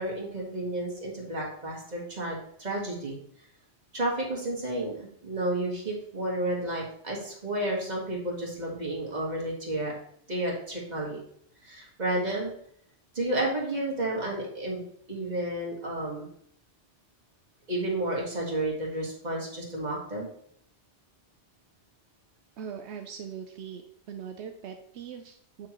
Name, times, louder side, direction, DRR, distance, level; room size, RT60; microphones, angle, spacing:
voice 1, 0.0-3.2 3.9-9.9 10.3-11.2 11.6-12.5 13.1-14.8 15.1-16.3 17.7-20.3, right 1 dB, 40° right, -3 dB, 1.9 m, -31 dB
voice 2, 22.6-25.7, right 7 dB, 80° right, 5 dB, 0.9 m, -41 dB
7.7 x 5.9 x 3.0 m, 0.67 s
omnidirectional pair, 1.1 m